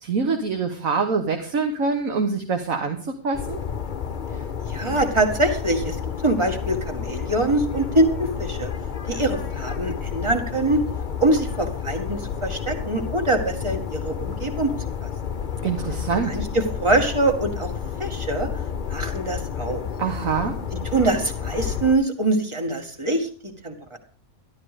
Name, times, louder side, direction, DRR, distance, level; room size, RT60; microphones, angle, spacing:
voice 1, 0.0-3.6 15.6-16.4 20.0-20.5, right 5 dB, 70° right, 4 dB, 1.7 m, -25 dB
sound 1, 3.3-21.9, left 7 dB, 40° left, 0.9 m, -31 dB
voice 2, 4.7-6.0 6.2-8.7 9.1-10.8 11.2-14.7 15.0-15.1 16.2-17.7 18.0-18.5 18.9-19.8 20.7-24.0, right 2 dB, 20° right, 4 dB, 2.0 m, -24 dB
12.5 x 12.5 x 5.0 m, 0.41 s
omnidirectional pair, 1.5 m